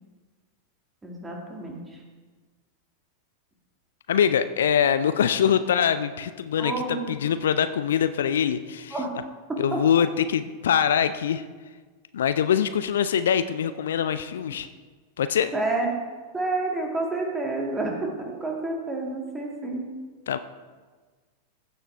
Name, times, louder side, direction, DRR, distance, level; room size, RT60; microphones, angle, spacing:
voice 1, 1.0-2.0 6.6-7.1 8.9-9.1 9.5-9.8 15.5-16.0 16.3-19.9, right 2 dB, 15° right, 0 dB, 2.1 m, -29 dB
voice 2, 4.1-9.0 9.6-11.4 12.1-14.7 15.2-15.5 20.3-20.4, left 8 dB, 60° left, 12 dB, 0.4 m, -23 dB
15.0 x 6.6 x 3.4 m, 1.4 s
figure-of-eight pair, 90°, 0 cm